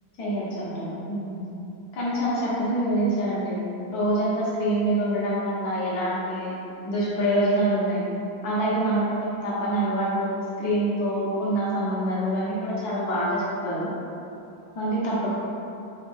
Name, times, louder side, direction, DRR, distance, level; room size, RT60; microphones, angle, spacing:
voice 1, 0.2-1.4 1.9-3.6 3.9-6.6 6.8-8.0 8.4-13.9 14.7-15.3, right 1 dB, 60° left, -7 dB, 1.3 m, -25 dB
4.1 x 2.6 x 3.4 m, 2.8 s
omnidirectional pair, 2.2 m